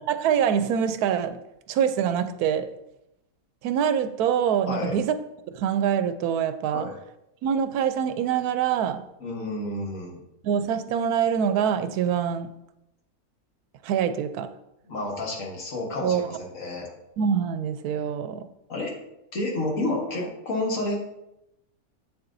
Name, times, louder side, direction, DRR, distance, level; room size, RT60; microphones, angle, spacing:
voice 1, 0.1-1.4 1.7-2.7 3.6-5.1 5.5-6.9 7.4-9.0 10.4-12.5 13.8-14.5 16.0-16.2 17.2-18.5, right 8 dB, 90° right, 11 dB, 1.1 m, -24 dB
voice 2, 4.7-5.0 6.7-7.0 9.2-10.2 14.9-16.9 18.7-18.9 19.3-21.1, left 2 dB, 60° left, -1 dB, 1.7 m, -30 dB
8.0 x 6.9 x 2.6 m, 0.87 s
omnidirectional pair, 1.6 m